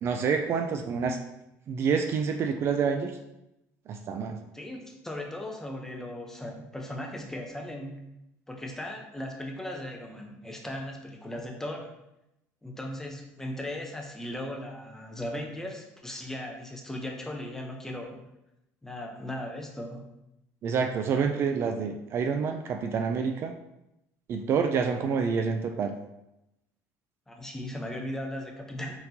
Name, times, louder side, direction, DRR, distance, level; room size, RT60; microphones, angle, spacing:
voice 1, 0.0-1.2 1.7-3.2 3.9-4.4 20.6-23.5 24.3-25.9, right 6 dB, 45° right, 6 dB, 0.3 m, -27 dB
voice 2, 4.5-8.1 8.5-11.9 12.6-18.2 18.8-20.1 27.3-29.0, left 1 dB, 5° left, 1 dB, 0.7 m, -37 dB
4.4 x 3.9 x 2.7 m, 0.88 s
cardioid pair, 125°, 6 cm